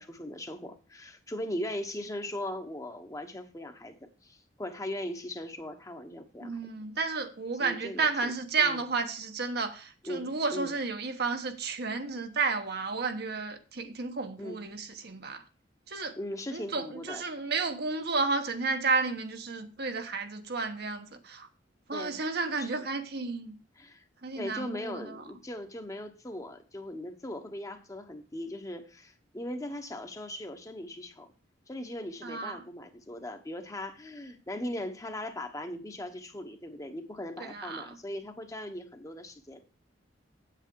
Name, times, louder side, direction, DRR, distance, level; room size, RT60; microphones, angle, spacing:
voice 1, 0.0-6.7 7.6-8.3 8.6-8.8 10.0-10.7 14.4-14.6 16.2-17.2 21.9-22.2 22.6-22.9 23.8-24.0 24.4-31.3 31.7-39.7, left 1 dB, 20° left, 1.0 m, -39 dB
voice 2, 6.4-15.4 15.9-16.2 16.5-21.5 21.9-23.6 24.2-25.2 32.2-32.6 37.4-37.9, right 4 dB, 60° right, 1.1 m, -32 dB
8.2 x 8.1 x 4.6 m
head